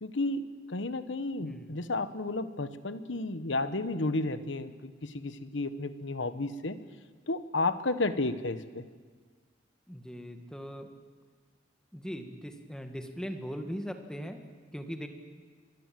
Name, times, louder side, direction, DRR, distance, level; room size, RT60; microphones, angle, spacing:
voice 1, 0.0-6.8 7.3-8.9, left 2 dB, 80° left, 11 dB, 1.2 m, -32 dB
voice 2, 1.4-1.7 9.9-10.9 11.9-14.4 14.7-15.1, equal, 5° left, 5 dB, 1.8 m, -39 dB
24.5 x 20.5 x 7.7 m, 1.5 s
head